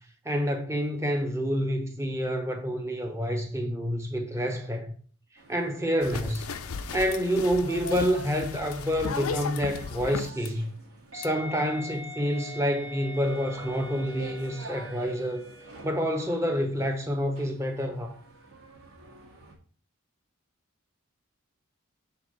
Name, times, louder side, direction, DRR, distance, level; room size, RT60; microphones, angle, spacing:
voice 1, 0.2-4.9 5.5-6.5 6.9-10.7 11.1-15.5 15.8-18.2, equal, 10° right, 0.9 m, -28 dB
sound 1, 5.4-19.5, right 1 dB, 80° right, 1.9 m, -45 dB
sound 2, 6.0-10.5 11.2-11.3, left 5 dB, 80° left, 0.5 m, -36 dB
7.0 x 3.7 x 5.1 m
head